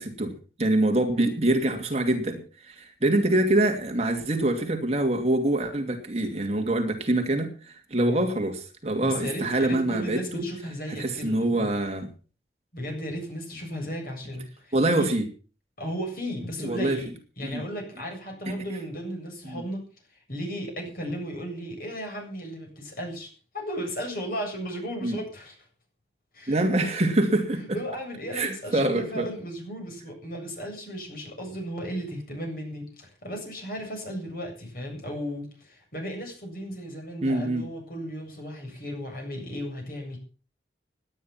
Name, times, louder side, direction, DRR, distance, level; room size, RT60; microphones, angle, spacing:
voice 1, 0.0-10.5 11.0-12.1 14.7-15.3 16.6-17.0 17.4-17.6 18.5-18.6 19.5-19.6 25.0-25.2 26.5-27.8 28.3-29.3 37.2-37.6, right 1 dB, 35° right, 4 dB, 2.6 m, -25 dB
voice 2, 9.0-11.7 12.7-15.1 15.8-17.1 17.4-19.9 20.3-25.5 26.3-26.9 27.6-40.2, equal, 50° left, 1 dB, 7.8 m, -35 dB
18.0 x 10.0 x 5.9 m, 0.38 s
head